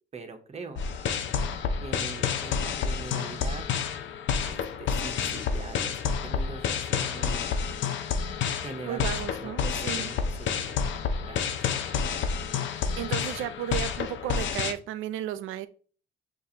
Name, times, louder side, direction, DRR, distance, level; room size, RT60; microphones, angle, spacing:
voice 1, 0.1-0.8 1.8-3.7 4.4-7.6 8.6-10.9 11.2-11.6, right 4 dB, 35° right, 0.8 m, -42 dB
sound 1, 0.8-14.7, left 6 dB, 70° left, 0.6 m, -29 dB
voice 2, 8.8-10.1 13.0-15.7, right 11 dB, 85° right, 0.4 m, -34 dB
6.6 x 2.5 x 2.8 m
cardioid pair, 90°, 20 cm